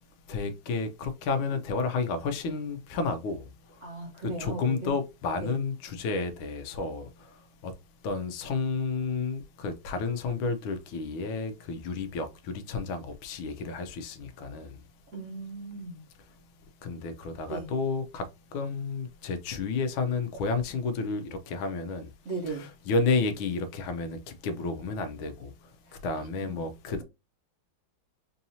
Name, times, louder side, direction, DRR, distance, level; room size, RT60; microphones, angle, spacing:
voice 1, 0.3-3.9 4.2-7.7 8.0-14.8 16.8-22.1 22.5-25.7 26.0-27.0, left 4 dB, 80° left, 1.5 m, -31 dB
voice 2, 3.8-4.9 5.4-5.6 15.1-16.0 17.5-17.7 22.2-22.7 25.9-26.0, right 3 dB, 45° right, 1.2 m, -37 dB
4.6 x 2.7 x 2.7 m
omnidirectional pair, 2.3 m